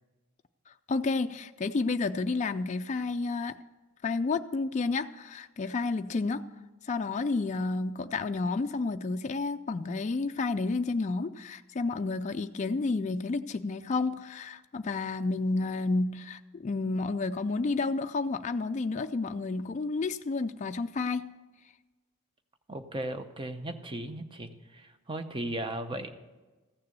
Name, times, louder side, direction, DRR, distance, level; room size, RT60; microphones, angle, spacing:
voice 1, 0.9-3.6 4.0-6.4 6.8-21.3, left 3 dB, 35° left, 7 dB, 0.3 m, -30 dB
voice 2, 22.7-26.1, right 1 dB, 25° right, 8 dB, 0.7 m, -36 dB
14.5 x 6.7 x 6.8 m, 1.2 s
head